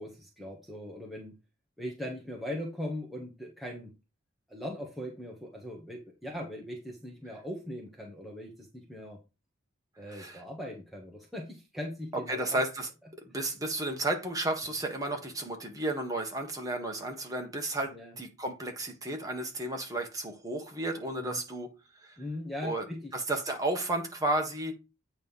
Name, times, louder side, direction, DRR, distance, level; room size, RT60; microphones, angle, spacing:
voice 1, 0.0-1.4 1.8-3.9 4.5-9.2 10.0-12.6 14.6-14.7 17.8-18.2 21.2-21.4 22.2-23.1, left 1 dB, ahead, 1.1 m, -40 dB
voice 2, 10.1-10.4 12.3-12.9 13.2-21.7 22.0-22.2 22.6-22.8 23.1-24.7, right 1 dB, 15° right, 1.4 m, -33 dB
8.8 x 3.2 x 5.5 m
head